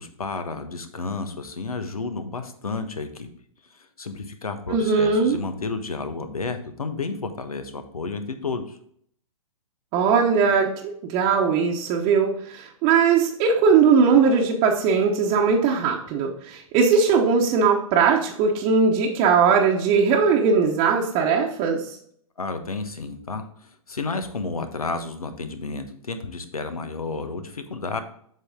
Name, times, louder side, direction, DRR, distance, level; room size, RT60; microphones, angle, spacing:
voice 1, 0.0-3.3 3.7-8.8 22.4-28.0, left 4 dB, 80° left, 8 dB, 1.2 m, -31 dB
voice 2, 4.7-5.4 9.9-10.7 11.1-21.9, right 5 dB, 30° right, -1 dB, 1.0 m, -19 dB
8.0 x 5.8 x 3.7 m, 0.64 s
figure-of-eight pair, 115°, 18 cm